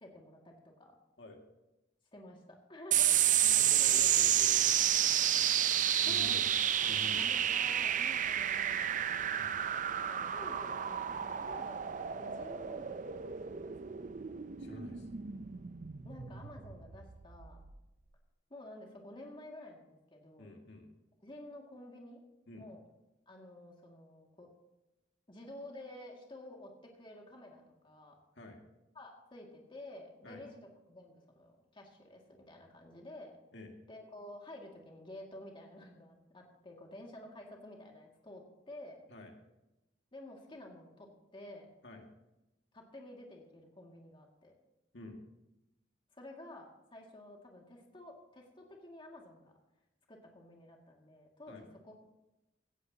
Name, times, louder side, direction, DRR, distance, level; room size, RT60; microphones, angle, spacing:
voice 1, 0.0-1.0 2.1-3.1 6.0-6.4 6.9-9.4 10.1-13.1 13.5-13.9 16.0-17.6 18.5-20.5 21.2-22.2 22.6-22.8 23.3-24.5 25.3-28.2 28.9-30.6 30.9-33.4 33.9-39.0 40.1-41.7 42.7-44.5 46.1-49.5 50.1-51.9, left 1 dB, 30° left, 0 dB, 2.2 m, -51 dB
sound 1, 2.9-17.7, right 10 dB, 45° right, 0.5 m, -31 dB
voice 2, 3.4-5.1 6.0-6.5 6.9-7.3 9.4-9.6 14.6-15.1 20.4-20.9 22.5-22.7 28.4-28.6 30.2-30.4 33.5-33.7 39.1-39.3 41.8-42.0 44.9-45.2 51.5-51.7, left 2 dB, 75° left, 2 dB, 2.1 m, -49 dB
17.0 x 14.5 x 2.9 m, 0.98 s
head